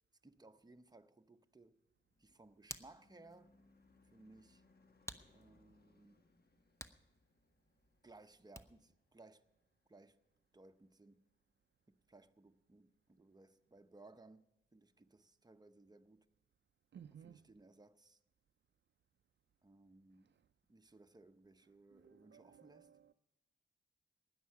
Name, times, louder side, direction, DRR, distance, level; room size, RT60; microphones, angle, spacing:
voice 1, 0.2-1.8 2.2-3.5 4.1-4.6 5.3-6.2 8.0-9.5 9.9-10.2 10.5-11.3 11.9-14.4 14.7-16.3 17.2-18.2 19.6-20.3 20.7-22.9, right 2 dB, 20° right, 0.7 m, -62 dB
Car passing by / Truck / Engine, 1.8-10.4, left 3 dB, 55° left, 1.2 m, -72 dB
Hands, 2.1-9.0, left 1 dB, 15° left, 0.8 m, -57 dB
voice 2, 16.9-17.4 20.3-20.4 21.9-23.1, right 8 dB, 60° right, 0.4 m, -58 dB
16.5 x 10.5 x 5.7 m
wide cardioid pair, 70°, 20 cm